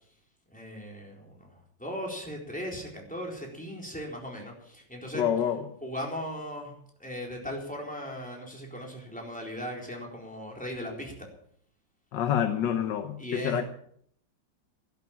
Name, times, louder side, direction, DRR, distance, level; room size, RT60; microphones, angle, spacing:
voice 1, 0.5-5.2 5.8-6.7 7.0-11.3 13.2-13.7, equal, 5° left, -1 dB, 4.1 m, -38 dB
voice 2, 5.1-5.7 12.1-13.6, left 9 dB, 75° left, 7 dB, 1.7 m, -27 dB
13.5 x 11.5 x 7.4 m, 0.66 s
omnidirectional pair, 2.0 m